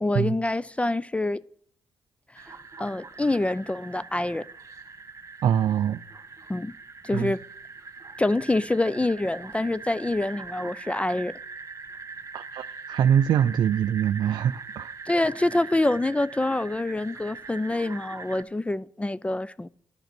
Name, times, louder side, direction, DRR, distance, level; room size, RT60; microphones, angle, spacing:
voice 1, 0.0-1.4 2.5-4.5 6.5-6.7 7.0-7.4 8.2-11.3 15.1-19.7, left 2 dB, 15° left, 0.4 m, -26 dB
sound 1, 2.4-18.4, right 4 dB, 40° right, 1.9 m, -42 dB
voice 2, 5.4-6.0 7.1-7.3 12.3-14.9, right 9 dB, 70° right, 0.4 m, -24 dB
10.5 x 9.1 x 6.0 m
supercardioid pair, 50°, 8 cm